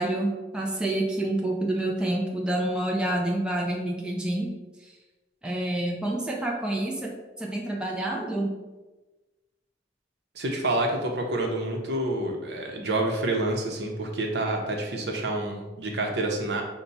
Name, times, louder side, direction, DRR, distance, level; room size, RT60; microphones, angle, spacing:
voice 1, 0.0-4.5 4.8-4.9 5.4-7.1 7.4-8.5, right 1 dB, 5° right, -2 dB, 0.5 m, -28 dB
voice 2, 10.3-16.6, right 2 dB, 65° right, 1 dB, 0.7 m, -28 dB
5.6 x 2.2 x 4.0 m, 1.2 s
head